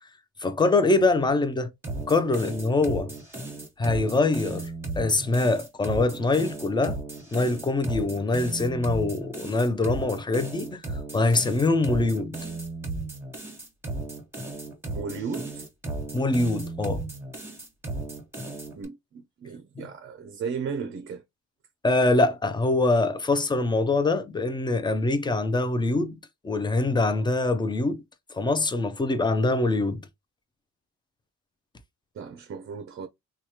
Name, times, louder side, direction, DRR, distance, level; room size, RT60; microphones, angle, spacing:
voice 1, 0.4-1.7 2.1-3.1 3.8-4.7 5.0-7.0 7.3-10.8 11.1-12.4 16.1-17.0 19.8-19.9 21.8-26.2 26.4-28.0 28.3-30.0, left 2 dB, 15° left, 0.5 m, -24 dB
sound 1, 1.8-18.8, right 2 dB, 10° right, 1.3 m, -35 dB
voice 2, 14.9-15.7 18.7-21.2 32.1-33.1, right 5 dB, 45° right, 0.5 m, -35 dB
3.1 x 2.3 x 2.8 m
cardioid pair, 90°, 30 cm